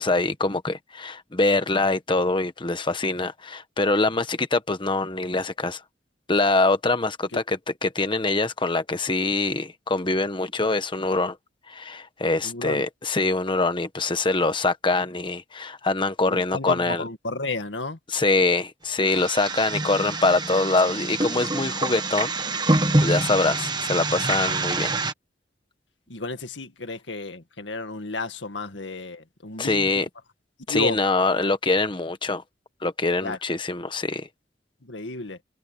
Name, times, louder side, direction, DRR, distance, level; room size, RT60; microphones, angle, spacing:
voice 1, 0.0-5.8 6.3-11.4 11.7-17.0 18.1-22.3 22.6-24.9 29.6-30.1 30.7-32.4 32.8-34.3, left 3 dB, 25° left, 1.3 m, -24 dB
voice 2, 12.4-12.8 16.3-18.0 26.1-30.0 30.7-31.0 33.2-33.4 34.8-35.4, left 3 dB, 85° left, 2.0 m, -32 dB
sound 1, 19.0-25.1, right 2 dB, 25° right, 1.3 m, -26 dB
head